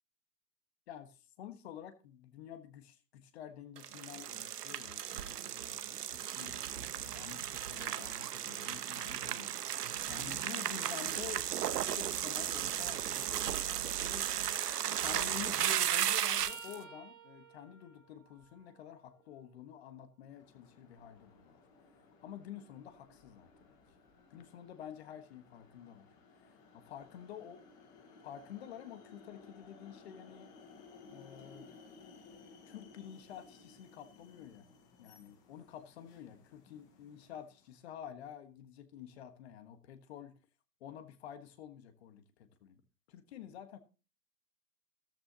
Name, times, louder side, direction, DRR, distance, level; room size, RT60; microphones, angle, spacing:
voice 1, 0.9-9.5 10.1-11.5 11.7-14.3 15.0-21.6 22.2-23.8 24.3-26.1 26.4-27.6 28.2-30.5 31.1-31.7 32.6-34.7 35.0-40.4 40.8-42.8 43.1-43.8, left 9 dB, 40° left, 10 dB, 1.4 m, -49 dB
sound 1, 3.8-16.8, right 10 dB, 70° right, 1.0 m, -35 dB
sound 2, 16.4-20.2 20.7-22.6 25.6-25.7 27.0-27.2 28.5-28.6, right 4 dB, 90° right, 3.6 m, -56 dB
sound 3, 20.3-37.8, left 4 dB, 10° left, 0.5 m, -59 dB
13.5 x 12.5 x 2.9 m, 0.33 s
hypercardioid pair, 140°, 48 cm